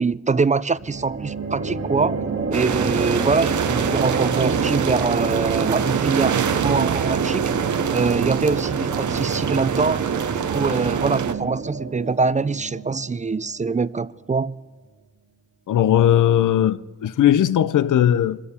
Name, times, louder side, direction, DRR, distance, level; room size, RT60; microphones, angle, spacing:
voice 1, 0.0-2.2 2.5-7.5 7.9-10.1 10.3-14.6, right 4 dB, 25° right, 0.4 m, -23 dB
sound 1, 0.8-14.2, right 4 dB, 45° right, 1.4 m, -28 dB
sound 2, 2.5-11.3, right 8 dB, 80° right, 0.7 m, -25 dB
voice 2, 15.7-18.4, left 11 dB, 90° left, 0.5 m, -18 dB
24.0 x 13.5 x 4.3 m
cardioid pair, 60°, 30 cm